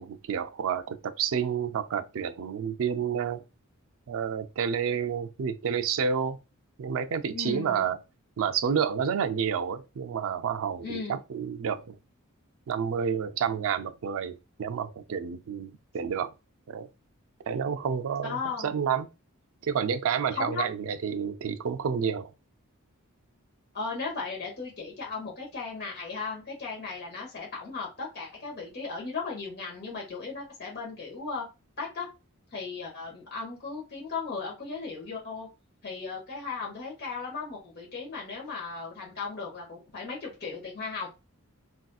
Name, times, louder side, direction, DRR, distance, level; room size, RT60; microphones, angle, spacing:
voice 1, 0.0-3.4 4.1-6.4 6.8-8.0 8.4-12.0 12.7-16.3 16.7-16.9 17.5-19.1 19.6-22.3, right 7 dB, 65° right, 0.4 m, -29 dB
voice 2, 7.3-7.9 10.8-11.2 18.2-18.7 20.3-20.6 23.7-31.5 31.8-32.1 32.5-35.5 35.8-41.1, left 4 dB, 50° left, 1.2 m, -36 dB
4.0 x 2.6 x 2.3 m
head